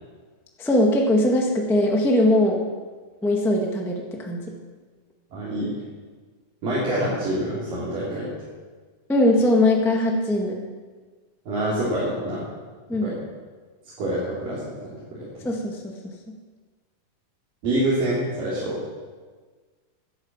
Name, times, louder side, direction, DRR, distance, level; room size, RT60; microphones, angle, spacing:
voice 1, 0.6-2.6 3.2-4.4 9.1-10.6 12.9-13.1 15.4-16.1, left 1 dB, 5° left, 0 dB, 0.3 m, -21 dB
voice 2, 5.3-5.8 6.6-8.3 11.5-12.4 13.0-13.1 14.0-14.8 15.1-15.3 17.6-18.8, right 1 dB, 75° right, -9 dB, 5.1 m, -26 dB
12.0 x 11.5 x 7.4 m, 1.4 s
omnidirectional pair, 3.9 m